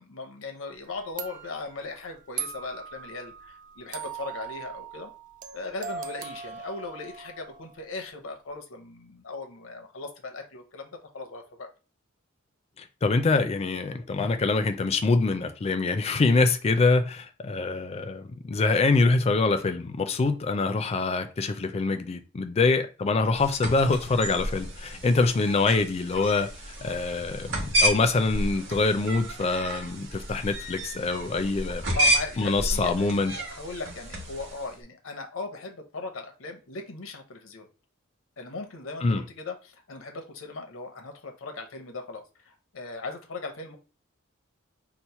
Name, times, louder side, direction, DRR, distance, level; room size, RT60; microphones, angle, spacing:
voice 1, 0.0-5.1 5.5-11.7 31.7-37.7 38.4-43.8, left 3 dB, 85° left, 0.7 m, -38 dB
sound 1, 0.7-0.8 1.2-7.9, right 7 dB, 40° right, 0.3 m, -40 dB
voice 2, 12.8-26.5 26.8-31.8 32.4-33.3 39.0-39.2, left 3 dB, 30° left, 0.4 m, -25 dB
sound 2, 23.4-34.7, right 1 dB, 60° right, 1.0 m, -31 dB
3.0 x 2.0 x 4.1 m
head